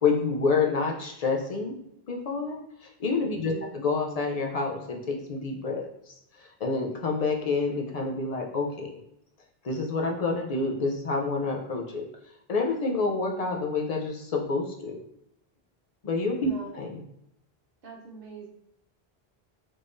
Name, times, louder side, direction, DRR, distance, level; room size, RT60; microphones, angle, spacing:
voice 1, 0.0-1.7 2.1-5.9 6.4-8.9 9.6-12.0 12.5-15.0 16.0-17.0, left 4 dB, 50° left, 1 dB, 0.5 m, -28 dB
voice 2, 3.4-3.7 16.4-16.7 17.8-18.5, right 3 dB, 65° right, -1 dB, 1.0 m, -43 dB
3.5 x 3.3 x 2.5 m, 0.77 s
omnidirectional pair, 1.1 m